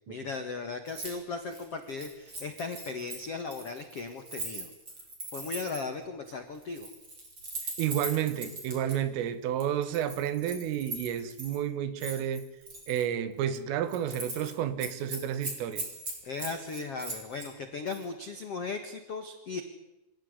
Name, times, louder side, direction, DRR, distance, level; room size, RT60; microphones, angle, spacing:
voice 1, 0.1-4.7 5.3-6.9 16.2-19.6, left 4 dB, 85° left, 7 dB, 1.3 m, -37 dB
Keys jangling, 0.9-1.1 1.4-5.9 6.6-9.0 9.6-11.6 12.0-13.1 13.4-13.6 13.9-14.5 14.8-17.5 17.9-18.1, right 2 dB, 25° right, 6.5 m, -40 dB
voice 2, 7.8-12.5 12.9-15.9, right 10 dB, 90° right, 12 dB, 4.3 m, -31 dB
27.0 x 16.5 x 9.7 m, 0.99 s
omnidirectional pair, 5.7 m